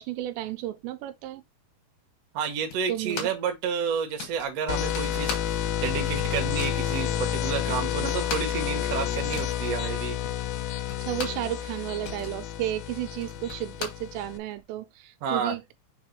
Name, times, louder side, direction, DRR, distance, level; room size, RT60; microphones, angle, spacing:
voice 1, 0.0-1.4 2.9-3.3 7.7-7.8 11.1-15.7, right 13 dB, 90° right, 2.9 m, -33 dB
voice 2, 2.3-10.2 15.2-15.5, right 6 dB, 75° right, 1.4 m, -30 dB
sound 1, 2.7-3.5 3.8-3.9 4.2-5.9 6.1-6.9 7.4-7.5 7.7-11.5 11.8-14.6, left 5 dB, 60° left, 2.9 m, -39 dB
sound 2, 4.7-14.4, left 10 dB, 80° left, 2.2 m, -30 dB
6.4 x 3.1 x 5.2 m
omnidirectional pair, 5.1 m